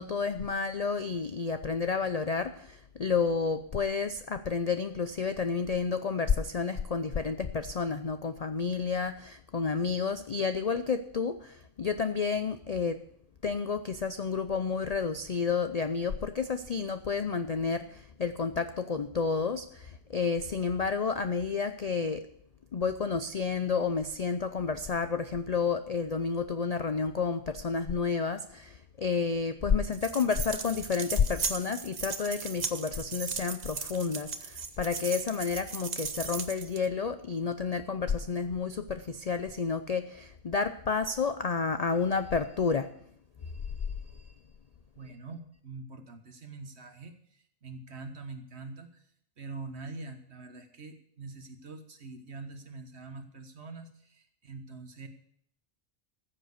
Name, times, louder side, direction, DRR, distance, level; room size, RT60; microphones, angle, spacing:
voice 1, 0.0-13.0 13.4-22.3 22.7-42.9, left 5 dB, 55° left, 10 dB, 0.4 m, -30 dB
sound 1, 29.9-36.9, right 5 dB, 40° right, 0.8 m, -37 dB
voice 2, 44.9-47.2 47.6-49.0 49.4-55.1, right 3 dB, 55° right, 7 dB, 1.6 m, -44 dB
14.5 x 7.8 x 6.5 m, 0.67 s
omnidirectional pair, 1.4 m